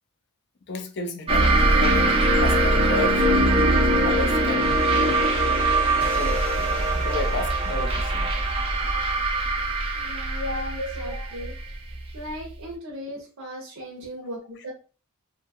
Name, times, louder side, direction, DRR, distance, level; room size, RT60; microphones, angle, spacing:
voice 1, 0.7-2.1 2.4-3.8 4.0-5.2 6.2-8.4 10.4-11.1 14.2-14.3, left 2 dB, 50° left, 0.4 m, -32 dB
sound 1, 1.3-12.5, right 2 dB, 25° right, 0.3 m, -22 dB
sound 2, 4.6-12.3, equal, 10° left, 0.6 m, -35 dB
voice 2, 10.0-11.5 12.1-14.7, equal, 70° right, 0.6 m, -38 dB
2.6 x 2.2 x 2.8 m
head